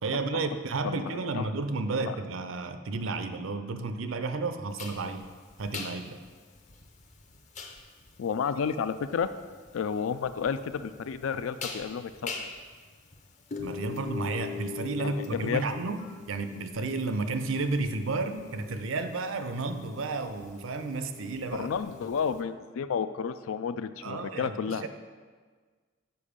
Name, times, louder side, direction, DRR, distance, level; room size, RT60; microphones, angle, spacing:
voice 1, 0.0-5.3 5.6-6.2 13.6-16.0 16.3-21.7 24.0-24.9, right 3 dB, 75° right, 9 dB, 0.5 m, -32 dB
voice 2, 0.8-1.5 2.1-2.2 8.2-9.3 9.7-12.5 15.0-15.6 21.5-24.8, left 6 dB, 80° left, 12 dB, 0.4 m, -31 dB
sound 1, 4.8-22.4, left 5 dB, 35° left, 0.6 m, -43 dB
6.9 x 5.2 x 5.0 m, 1.5 s
head